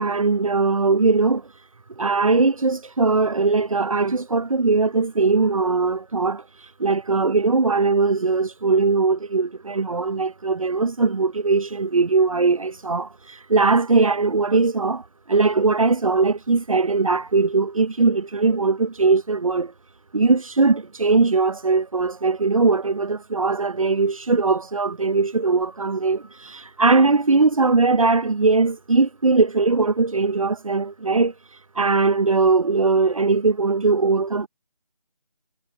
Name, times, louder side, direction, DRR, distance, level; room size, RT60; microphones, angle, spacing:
voice 1, 0.0-1.5 2.0-6.4 6.8-19.7 20.1-31.3 31.7-34.5, right 3 dB, 55° right, 0.9 m, -20 dB
figure-of-eight pair, 175°, 20 cm